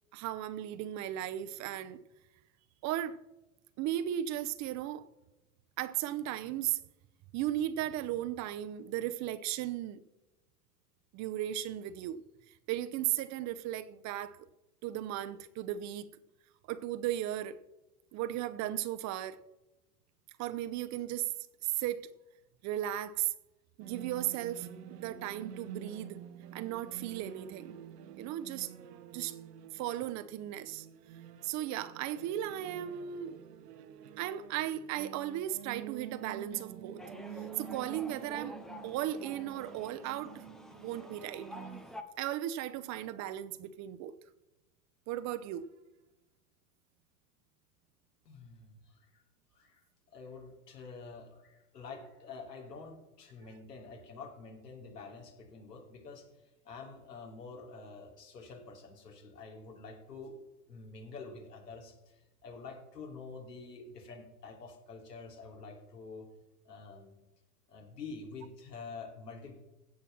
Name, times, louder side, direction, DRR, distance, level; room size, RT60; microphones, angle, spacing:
voice 1, 0.1-2.0 2.8-3.2 3.8-5.1 5.8-6.8 7.3-10.0 11.1-12.2 12.7-14.5 14.8-16.1 16.7-17.6 18.1-19.4 20.4-21.3 21.6-22.1 22.6-23.3 23.8-26.2 26.5-27.8 28.2-28.7 29.1-29.4 29.7-30.9 31.4-33.4 34.2-37.0 37.3-38.6 38.8-40.4 40.7-41.5 42.2-44.1 45.1-45.7, right 12 dB, 35° right, 0.8 m, -36 dB
sound 1, 23.8-41.8, right 9 dB, 75° right, 1.0 m, -48 dB
sound 2, 37.0-42.0, equal, ahead, 0.3 m, -48 dB
voice 2, 48.2-49.2 49.5-49.8 50.1-56.3 56.6-60.4 60.7-66.3 66.6-67.2 67.7-69.6, left 4 dB, 80° left, 3.2 m, -47 dB
16.0 x 5.7 x 6.0 m
hypercardioid pair, 95°, 48 cm